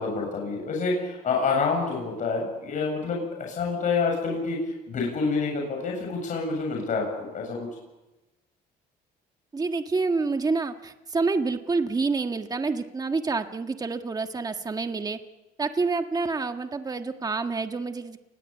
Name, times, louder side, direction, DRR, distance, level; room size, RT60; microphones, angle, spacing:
voice 1, 0.0-7.7, left 4 dB, 50° left, 0 dB, 7.5 m, -28 dB
voice 2, 9.5-15.2 15.6-18.2, right 4 dB, 20° right, 6 dB, 1.6 m, -28 dB
29.5 x 21.0 x 8.4 m, 1.0 s
cardioid pair, 110°, 17 cm